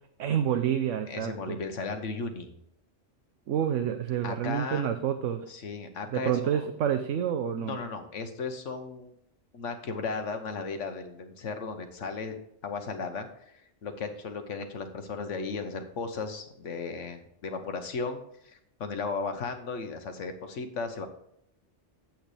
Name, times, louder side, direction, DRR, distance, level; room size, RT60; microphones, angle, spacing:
voice 1, 0.2-1.6 3.5-5.5 6.1-7.8, right 9 dB, 90° right, 7 dB, 1.0 m, -28 dB
voice 2, 1.1-2.6 4.2-4.9 5.5-6.7 7.6-9.1 9.5-12.3 12.6-21.1, left 4 dB, 85° left, 7 dB, 1.4 m, -35 dB
8.8 x 8.1 x 3.3 m, 0.72 s
omnidirectional pair, 1.2 m